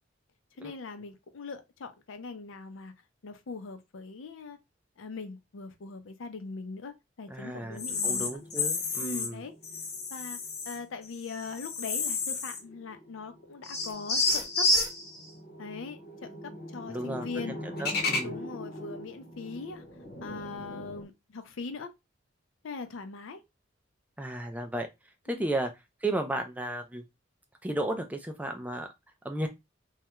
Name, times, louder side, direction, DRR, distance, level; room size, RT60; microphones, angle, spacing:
voice 1, 0.6-2.9 3.2-4.6 5.0-8.3 9.0-9.5 10.1-10.4 10.7-14.7 15.6-17.6 18.2-19.8 20.2-21.9 22.6-23.4 25.3-25.5, left 4 dB, 85° left, 0.5 m, -41 dB
voice 2, 7.3-9.4 16.9-18.4 24.2-24.9 25.3-25.7 26.0-27.0 27.6-28.9 29.2-29.5, right 1 dB, 10° right, 0.3 m, -34 dB
sound 1, 7.7-9.3 9.6-10.8 11.1-12.7 13.0-13.1 13.6-21.0, left 3 dB, 50° left, 0.7 m, -32 dB
2.3 x 2.2 x 2.8 m
head